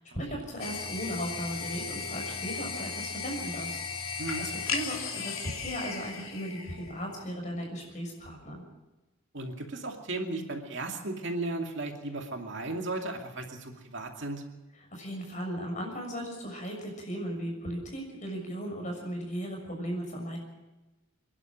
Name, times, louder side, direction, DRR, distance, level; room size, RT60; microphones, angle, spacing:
voice 1, 0.0-8.6 14.9-20.4, equal, 35° left, 1 dB, 6.6 m, -37 dB
sound 1, 0.6-7.2, left 5 dB, 80° left, 2.9 m, -36 dB
voice 2, 9.3-14.4, right 2 dB, 60° right, 2 dB, 2.5 m, -35 dB
26.0 x 11.5 x 8.7 m, 1.0 s
head